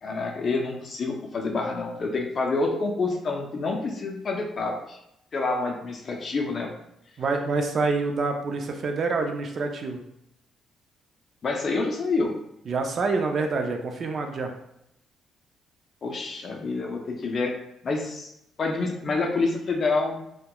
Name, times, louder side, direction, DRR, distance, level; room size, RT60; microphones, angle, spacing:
voice 1, 0.0-5.0 5.3-6.7 11.4-12.3 16.0-17.5 17.8-18.3 18.6-20.3, left 3 dB, 50° left, 1 dB, 0.4 m, -27 dB
voice 2, 7.2-10.0 12.7-14.5, right 3 dB, 50° right, 4 dB, 0.4 m, -27 dB
2.8 x 2.1 x 2.2 m, 0.79 s
cardioid pair, 90°, 0 cm